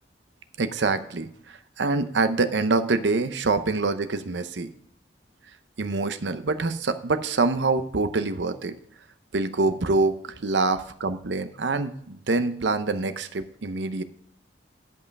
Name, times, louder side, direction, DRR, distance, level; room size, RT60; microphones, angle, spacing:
voice 1, 0.6-1.3 1.8-4.7 5.8-8.7 9.3-14.0, right 3 dB, 80° right, 10 dB, 0.7 m, -25 dB
11.0 x 5.5 x 5.3 m, 0.68 s
head